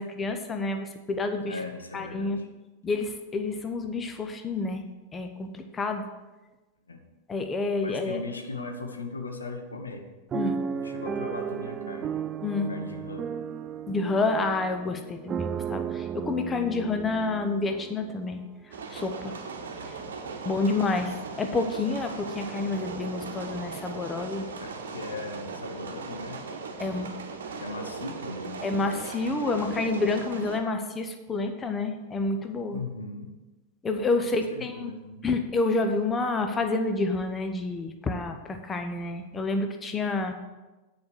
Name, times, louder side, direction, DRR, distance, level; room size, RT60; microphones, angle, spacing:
voice 1, 0.0-1.6 1.9-2.4 2.8-4.8 5.1-6.0 7.3-8.2 10.3-10.6 12.4-12.7 13.9-18.4 18.9-19.3 20.4-21.1 21.4-24.5 26.8-27.1 28.6-32.8 33.8-34.9 35.2-40.3, left 3 dB, 20° left, 6 dB, 0.8 m, -29 dB
voice 2, 1.4-2.5 6.9-7.0 7.8-10.1 10.7-12.2 12.7-13.3 20.4-20.8 24.6-26.4 26.8-27.2 27.5-28.7 32.7-33.3 34.3-35.2, left 3 dB, 75° left, 5 dB, 1.0 m, -38 dB
sound 1, 10.3-18.4 19.0-19.1 19.4-19.6, right 7 dB, 25° right, 0.4 m, -34 dB
sound 2, 18.7-30.6, right 4 dB, 65° right, 1.0 m, -38 dB
9.4 x 5.1 x 6.3 m, 1.1 s
figure-of-eight pair, 90°, 0 cm